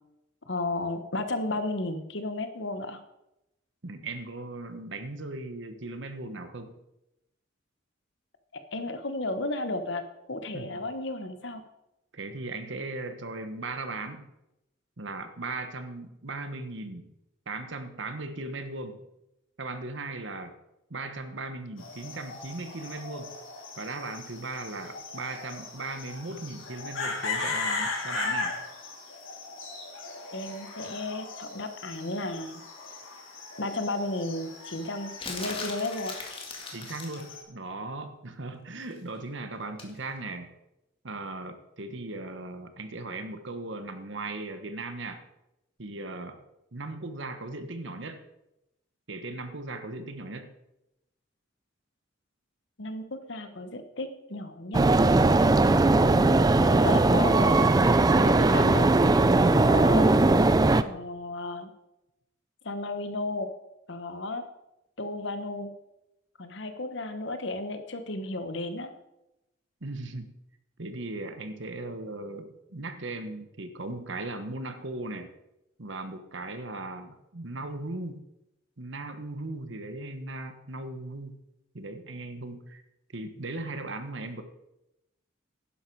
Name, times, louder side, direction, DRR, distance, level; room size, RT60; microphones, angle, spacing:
voice 1, 0.5-3.0 8.7-10.0 10.3-11.6 30.3-32.6 33.6-36.1 52.8-54.8 56.0-56.4 56.6-57.7 58.2-58.9 59.4-60.1 60.8-61.7 62.6-63.5 63.9-64.4 65.0-65.7 66.4-68.9, left 2 dB, 60° left, 9 dB, 1.2 m, -33 dB
voice 2, 3.8-6.8 10.5-10.8 12.1-14.3 15.0-17.1 17.5-19.1 19.6-20.5 20.9-23.4 23.8-28.6 36.7-40.5 41.0-45.2 45.8-46.4 46.7-48.2 49.1-50.5 69.8-70.3 70.8-75.3 75.8-78.3 78.8-81.4 81.7-82.8 83.1-84.4, right 2 dB, 65° right, 9 dB, 1.2 m, -38 dB
sound 1, 21.8-37.4, left 3 dB, 80° left, 3.3 m, -38 dB
sound 2, 35.2-37.3 39.8-40.0, left 4 dB, 25° left, 2.0 m, -39 dB
sound 3, 54.7-60.8, right 2 dB, 20° right, 0.3 m, -20 dB
11.5 x 10.5 x 4.7 m, 0.91 s
head